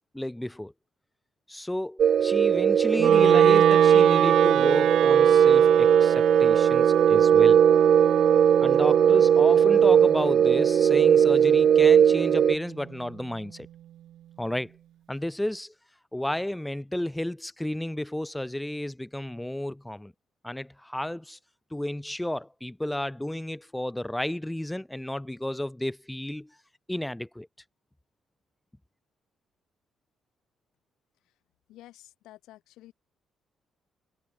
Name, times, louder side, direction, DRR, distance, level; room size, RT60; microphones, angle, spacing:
voice 1, 0.1-0.7 1.5-7.6 8.6-13.7 14.4-14.7 15.1-15.7 16.1-20.1 20.4-21.4 21.7-26.5 26.9-27.5, left 1 dB, 5° left, 2.7 m, -32 dB
sound 1, 2.0-12.6, right 8 dB, 60° right, 0.9 m, -19 dB
Wind instrument woodwind instrument, 3.0-13.1, right 12 dB, 75° right, 2.2 m, -28 dB
voice 2, 31.7-32.9, left 15 dB, 90° left, 5.5 m, -51 dB
cardioid pair, 90°, 0 cm